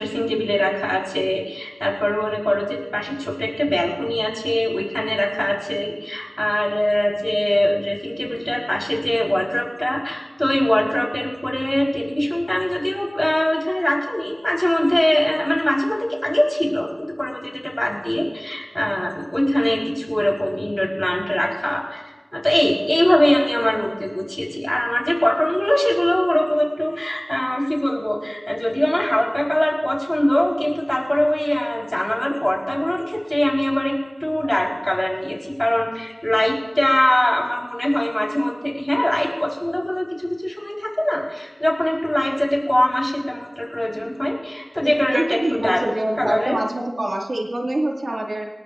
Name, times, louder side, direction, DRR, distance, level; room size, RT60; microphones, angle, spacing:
voice 1, 0.0-22.0 22.3-45.8 46.2-46.6, left 1 dB, 20° left, -1 dB, 4.1 m, -22 dB
voice 2, 44.8-48.5, right 1 dB, 90° right, -1 dB, 2.2 m, -25 dB
22.5 x 18.0 x 2.5 m, 1.2 s
wide cardioid pair, 50°, 0 cm